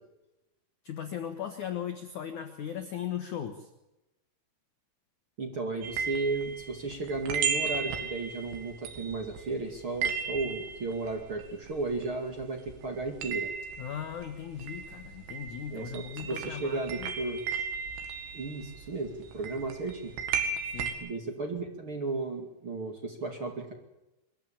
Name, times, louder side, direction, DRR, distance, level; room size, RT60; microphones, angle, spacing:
voice 1, 0.8-3.7 13.8-17.1 20.7-20.9, left 9 dB, 80° left, 7 dB, 1.7 m, -38 dB
voice 2, 5.4-13.5 15.7-17.4 18.3-20.1 21.0-23.7, right 3 dB, 40° right, 2 dB, 2.1 m, -34 dB
sound 1, 5.8-12.4 12.7-20.9, right 6 dB, 65° right, 4.0 m, -35 dB
23.0 x 14.5 x 8.8 m, 0.97 s
omnidirectional pair, 5.6 m